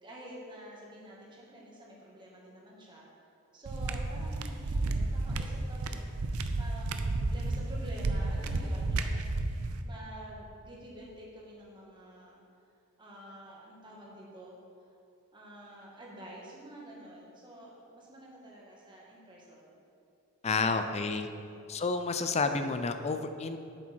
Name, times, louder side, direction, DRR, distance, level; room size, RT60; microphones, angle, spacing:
voice 1, 0.0-3.1 3.5-12.4 13.0-14.6 15.3-19.7 20.5-20.9 21.3-21.6, right 1 dB, 20° right, -4 dB, 1.8 m, -49 dB
sound 1, 3.7-9.8, right 2 dB, 85° right, 0.6 m, -32 dB
voice 2, 20.4-21.3 21.7-23.6, left 4 dB, 30° left, 8 dB, 0.5 m, -30 dB
7.8 x 7.3 x 4.5 m, 2.6 s
head